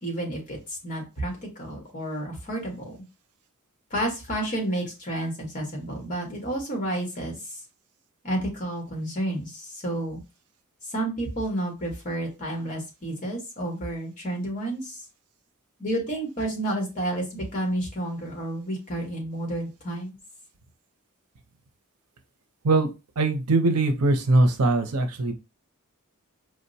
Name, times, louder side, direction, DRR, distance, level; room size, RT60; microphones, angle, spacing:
voice 1, 0.0-3.0 3.9-7.6 8.2-10.2 10.8-15.0 15.8-20.2, right 1 dB, 35° left, 0 dB, 1.5 m, -30 dB
voice 2, 23.2-25.3, right 2 dB, 90° right, 7 dB, 0.7 m, -21 dB
4.8 x 2.1 x 2.6 m, 0.27 s
head